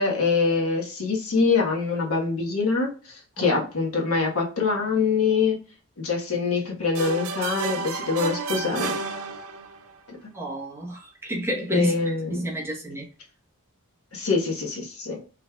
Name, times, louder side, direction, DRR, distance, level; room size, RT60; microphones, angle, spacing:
voice 1, 0.0-5.6 6.0-9.0 10.1-10.2 11.7-12.5 14.1-15.2, left 4 dB, 85° left, 1.3 m, -24 dB
sound 1, 6.9-9.9, right 4 dB, 80° right, 0.6 m, -31 dB
voice 2, 10.3-13.0, equal, 10° right, 1.0 m, -30 dB
4.9 x 3.2 x 2.3 m
head